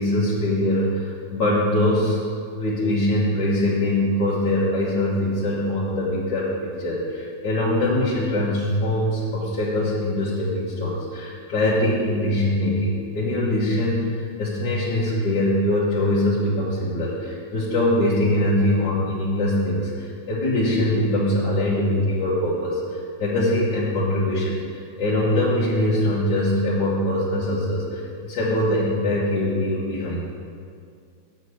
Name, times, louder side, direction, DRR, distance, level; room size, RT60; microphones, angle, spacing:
voice 1, 0.0-2.2 2.5-30.3, left 1 dB, 70° left, -9 dB, 2.1 m, -23 dB
8.9 x 5.2 x 7.9 m, 2.2 s
omnidirectional pair, 2.0 m